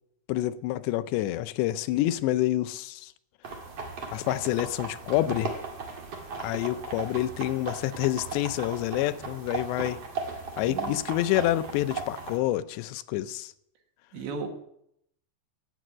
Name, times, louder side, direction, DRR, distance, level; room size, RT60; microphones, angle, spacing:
voice 1, 0.3-3.1 4.1-5.6 6.4-10.0 10.6-13.5, left 14 dB, 80° left, 2.8 m, -28 dB
sound 1, 3.4-12.4, right 4 dB, 45° right, 2.3 m, -37 dB
voice 2, 10.7-11.0 14.1-14.5, right 4 dB, 75° right, 4.0 m, -35 dB
17.5 x 7.7 x 6.2 m
omnidirectional pair, 5.1 m